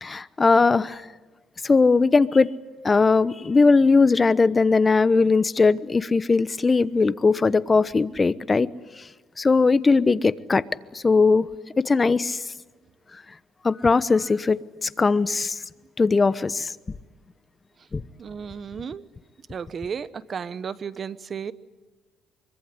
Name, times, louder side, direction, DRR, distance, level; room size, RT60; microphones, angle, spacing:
voice 1, 0.0-1.0 1.6-2.5 2.8-8.7 9.4-10.6 10.9-11.5 11.8-12.4 13.6-15.6 16.0-16.7 17.9-18.0, left 4 dB, 25° left, 1.0 m, -19 dB
voice 2, 18.2-19.0 19.5-21.5, right 6 dB, 40° right, 1.2 m, -33 dB
25.0 x 23.5 x 9.8 m
cardioid pair, 95°, 0 cm